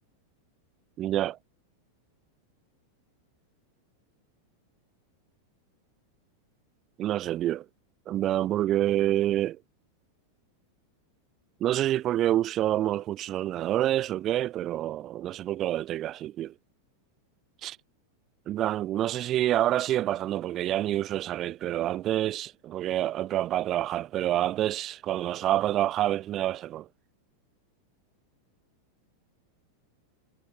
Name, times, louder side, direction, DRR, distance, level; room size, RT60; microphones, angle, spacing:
voice 1, 1.0-1.4 7.0-7.6 8.1-9.6 11.6-16.5 17.6-17.8 18.5-26.9, right 13 dB, 30° right, 4.1 m, -27 dB
figure-of-eight pair, 90°, 0 cm